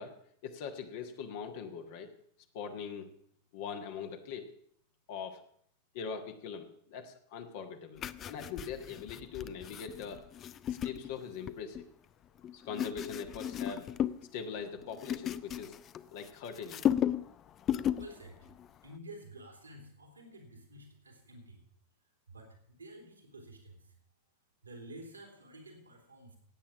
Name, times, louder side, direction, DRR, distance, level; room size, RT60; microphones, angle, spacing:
voice 1, 0.0-2.1 2.5-3.1 3.5-4.6 5.1-5.4 5.9-10.2 10.7-11.9 12.5-13.9 14.3-15.8 16.1-16.8, left 6 dB, 50° left, 5 dB, 1.4 m, -42 dB
sound 1, 8.0-11.9 12.4-14.3 14.6-16.3 16.6-17.3 17.6-18.1 18.5-18.7, left 10 dB, 30° left, 0.5 m, -35 dB
voice 2, 18.0-18.5 18.8-21.6 22.3-23.9 24.6-26.4, right 1 dB, 80° right, 2 dB, 3.0 m, -51 dB
16.5 x 8.8 x 6.1 m, 0.65 s
figure-of-eight pair, 90°, 0 cm